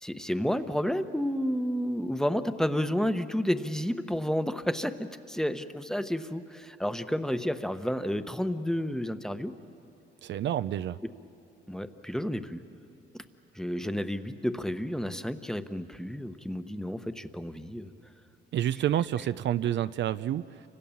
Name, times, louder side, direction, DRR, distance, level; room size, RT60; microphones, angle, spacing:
voice 1, 0.0-9.5 11.7-12.6 13.1-13.2 13.5-17.9, equal, 5° left, 9 dB, 1.0 m, -31 dB
voice 2, 10.2-11.0 18.5-20.6, right 11 dB, 65° right, 13 dB, 0.5 m, -29 dB
29.5 x 25.5 x 7.2 m, 2.7 s
cardioid pair, 90°, 20 cm